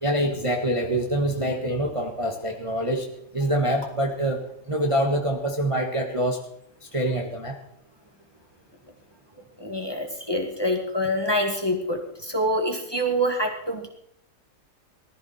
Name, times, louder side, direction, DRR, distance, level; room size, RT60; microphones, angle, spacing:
voice 1, 0.0-3.1 3.3-6.4 6.9-7.6, right 1 dB, 20° right, 2 dB, 1.5 m, -25 dB
voice 2, 9.6-13.9, equal, 15° left, 3 dB, 2.1 m, -26 dB
19.5 x 14.0 x 4.4 m, 0.71 s
omnidirectional pair, 1.9 m